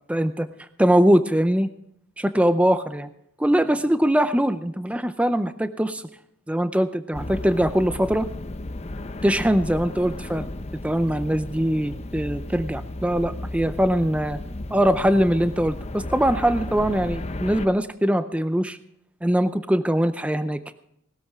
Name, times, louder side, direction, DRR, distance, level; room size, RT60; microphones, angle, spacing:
voice 1, 0.1-0.5 0.8-1.7 2.2-3.1 3.4-6.0 6.5-8.3 9.2-10.5 10.8-14.4 14.7-18.8 19.2-20.6, right 1 dB, 5° right, 10 dB, 0.5 m, -22 dB
sound 1, 7.1-17.7, left 1 dB, 30° left, 0.7 m, -34 dB
19.5 x 13.0 x 3.6 m, 0.75 s
head